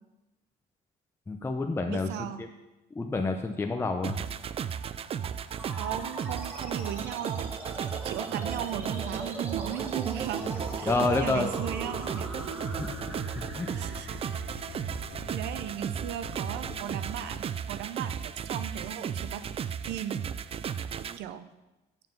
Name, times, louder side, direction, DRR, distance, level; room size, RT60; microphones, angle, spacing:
voice 1, 1.3-2.1 2.4-2.5 2.9-4.2 10.9-11.5 12.8-13.0 13.4-13.7, left 3 dB, 15° left, 3 dB, 0.6 m, -29 dB
voice 2, 1.9-2.4 5.8-7.5 8.0-10.5 10.8-10.9 11.2-12.3 13.8-14.1 14.5-14.7 15.3-19.5 19.9-20.2 21.2-21.5, right 10 dB, 85° right, 11 dB, 0.7 m, -37 dB
sound 1, 4.0-21.2, right 8 dB, 35° right, 0.4 m, -35 dB
sound 2, 5.6-16.5, equal, 10° right, 1.6 m, -42 dB
sound 3, 10.4-17.4, left 5 dB, 65° left, 1.2 m, -46 dB
7.8 x 7.2 x 5.4 m, 1.0 s
cardioid pair, 110°, 17 cm